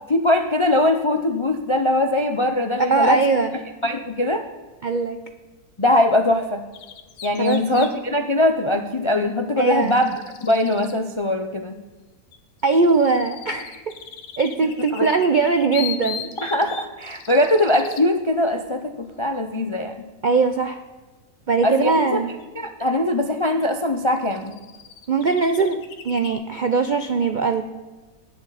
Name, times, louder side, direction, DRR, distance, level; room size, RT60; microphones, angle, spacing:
voice 1, 0.1-3.2 3.8-4.4 5.8-6.6 7.2-11.8 14.9-15.1 16.4-19.9 21.6-22.2 22.6-24.5, left 1 dB, 40° left, 6 dB, 0.4 m, -21 dB
voice 2, 2.9-3.5 4.8-5.2 7.4-7.9 9.6-10.0 12.6-13.8 14.4-16.3 20.2-20.8 21.5-22.3 25.1-25.8 26.0-27.6, right 4 dB, 60° right, 8 dB, 0.5 m, -20 dB
sound 1, 6.7-7.9 9.6-11.0 12.3-18.1 22.4-22.5 23.6-23.7 24.1-26.3, left 8 dB, 85° left, 1.5 m, -38 dB
19.5 x 6.9 x 4.1 m, 1.3 s
omnidirectional pair, 1.7 m